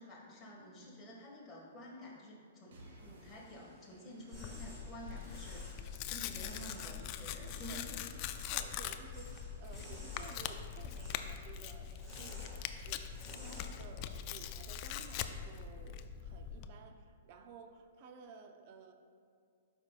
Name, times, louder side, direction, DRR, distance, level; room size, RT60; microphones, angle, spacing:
voice 1, 0.0-5.7 6.1-8.2, equal, 10° left, -6 dB, 1.8 m, -50 dB
sound 1, 2.7-6.0, right 1 dB, 75° right, 1.6 m, -60 dB
sound 2, 3.5-13.8, equal, 15° right, 1.8 m, -56 dB
Tearing, 4.3-16.7, left 9 dB, 35° left, 0.3 m, -42 dB
voice 2, 8.5-18.9, right 5 dB, 40° right, 6 dB, 0.6 m, -55 dB
12.0 x 5.3 x 2.5 m, 2.2 s
hypercardioid pair, 150°, 0 cm